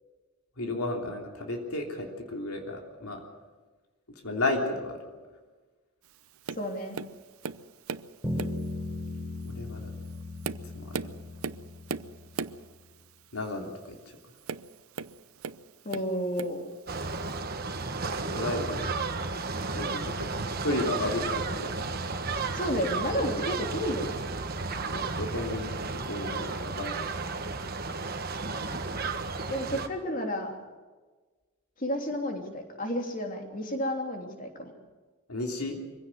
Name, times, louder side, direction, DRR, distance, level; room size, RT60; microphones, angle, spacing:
voice 1, 0.6-3.2 4.2-5.0 9.4-9.9 10.7-11.1 13.3-14.0 18.3-18.9 19.7-20.3 20.6-21.7 24.9-27.0 35.3-35.8, left 2 dB, 85° left, 2 dB, 3.3 m, -33 dB
Tap, 6.5-6.7 6.9-8.1 8.4-8.7 9.4-9.5 10.1-12.7 14.4-15.6 15.9-16.6 17.4-17.5, right 5 dB, 75° right, 0.7 m, -37 dB
voice 2, 6.6-7.0 15.8-16.7 22.5-24.2 29.5-30.5 31.8-34.7, equal, 35° left, 3 dB, 3.1 m, -31 dB
sound 1, 8.2-12.6, left 2 dB, 5° left, 4.0 m, -37 dB
sound 2, 16.9-29.9, right 3 dB, 45° right, 1.4 m, -33 dB
23.5 x 16.0 x 7.9 m, 1.3 s
head